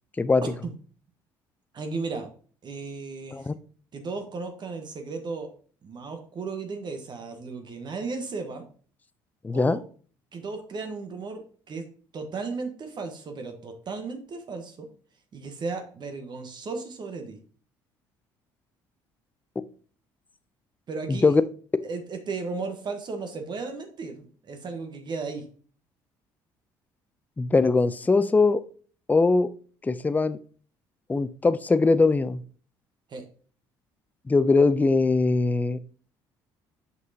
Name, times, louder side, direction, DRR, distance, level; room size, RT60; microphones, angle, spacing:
voice 1, 1.7-2.3 2.6-3.5 3.9-5.5 5.8-8.6 9.5-9.8 10.3-11.8 12.1-14.9 15.3-17.4 20.9-21.4 21.8-25.4 33.1-33.2, right 4 dB, 45° right, 5 dB, 1.2 m, -35 dB
voice 2, 9.4-9.8 21.1-21.4 27.4-28.6 29.1-29.5 29.8-30.4 31.1-32.4 34.3-35.8, left 3 dB, 15° left, 14 dB, 0.4 m, -21 dB
6.3 x 5.5 x 2.8 m, 0.43 s
hypercardioid pair, 65°, 10 cm